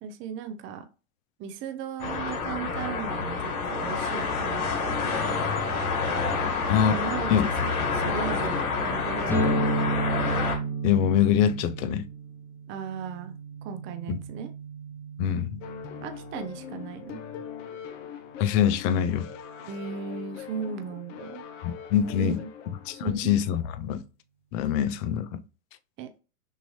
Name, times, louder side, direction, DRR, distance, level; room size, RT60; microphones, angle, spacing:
voice 1, 0.0-0.9 1.4-5.5 6.4-9.7 12.7-13.3 13.6-14.5 16.0-17.2 19.7-21.4 22.2-22.5 22.9-23.4 26.0-26.1, right 7 dB, 30° right, 0.6 m, -37 dB
sound 1, 2.0-10.6, left 4 dB, 90° left, 1.6 m, -28 dB
sound 2, 9.3-16.9, right 2 dB, 5° left, 0.8 m, -32 dB
voice 2, 10.8-12.1 14.1-14.2 15.2-15.6 18.4-19.3 21.6-22.4 22.9-24.0 24.5-25.4, left 9 dB, 35° left, 0.5 m, -24 dB
sound 3, 15.6-23.1, left 8 dB, 60° left, 0.9 m, -42 dB
6.4 x 2.6 x 3.1 m
hypercardioid pair, 120°, 42 cm